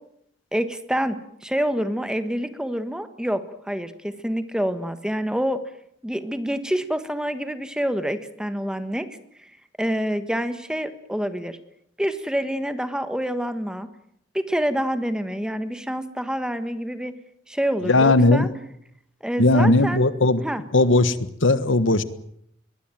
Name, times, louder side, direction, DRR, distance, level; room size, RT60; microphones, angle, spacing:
voice 1, 0.5-5.6 6.0-9.1 9.4-9.5 9.8-11.6 12.0-13.9 14.3-17.1 17.5-18.5 19.2-20.0 20.4-20.6, equal, 5° right, 10 dB, 1.5 m, -27 dB
voice 2, 17.8-18.5 19.4-20.4 20.7-22.0, left 2 dB, 85° left, 14 dB, 1.5 m, -18 dB
22.5 x 19.5 x 9.1 m, 0.71 s
head